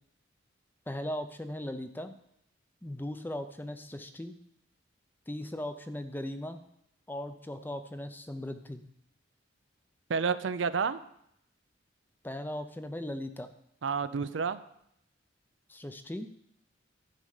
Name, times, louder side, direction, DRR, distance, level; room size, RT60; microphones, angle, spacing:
voice 1, 0.9-2.1 2.8-4.4 5.3-6.6 7.1-8.8 12.2-13.5 15.7-16.3, left 1 dB, 10° left, 8 dB, 0.6 m, -38 dB
voice 2, 10.1-11.0 13.8-14.6, right 5 dB, 70° right, 13 dB, 0.5 m, -29 dB
12.0 x 5.3 x 6.5 m, 0.75 s
head